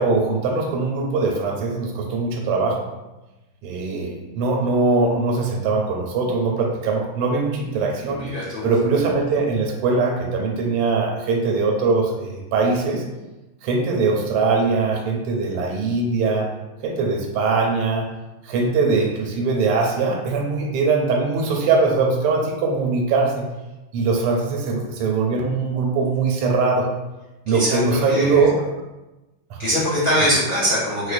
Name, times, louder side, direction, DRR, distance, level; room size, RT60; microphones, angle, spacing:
voice 1, 0.0-2.8 3.6-8.2 8.6-13.0 13.6-16.5 16.8-18.1 18.4-23.4 23.9-26.9 27.5-28.6 29.5-29.6, right 4 dB, 85° right, 0 dB, 1.5 m, -21 dB
voice 2, 8.0-8.7 27.5-27.8 28.1-28.4 29.6-31.1, equal, 70° left, -10 dB, 0.5 m, -22 dB
4.8 x 2.1 x 2.5 m, 1.0 s
omnidirectional pair, 2.4 m